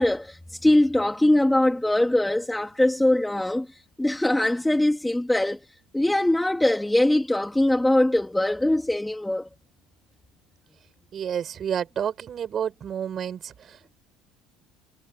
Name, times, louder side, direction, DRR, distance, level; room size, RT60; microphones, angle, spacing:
voice 1, 0.0-3.7 4.0-5.6 5.9-9.5, left 1 dB, 5° left, 3.0 m, -22 dB
voice 2, 11.1-13.9, right 8 dB, 35° right, 7.4 m, -30 dB
cardioid pair, 130°, 0 cm